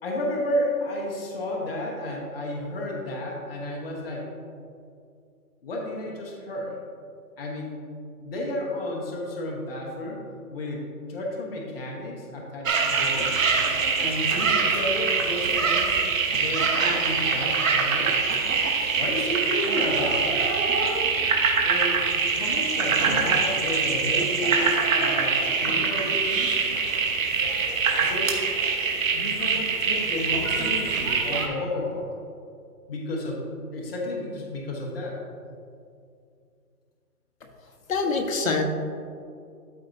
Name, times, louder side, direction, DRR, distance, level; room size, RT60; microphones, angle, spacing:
voice 1, 0.0-4.2 5.6-6.8 7.4-7.7 8.2-10.2 10.5-10.8 11.1-13.3 14.0-16.0 16.3-18.2 19.0-20.3 21.6-26.6 28.0-28.4 29.1-32.1 32.9-35.2, left 1 dB, 40° left, -2 dB, 1.2 m, -32 dB
sound 1, 12.7-31.5, right 5 dB, 55° right, 1.2 m, -24 dB
voice 2, 37.9-38.6, left 4 dB, 60° left, 3 dB, 1.2 m, -25 dB
12.5 x 4.4 x 2.6 m, 2.4 s
hypercardioid pair, 160°, 46 cm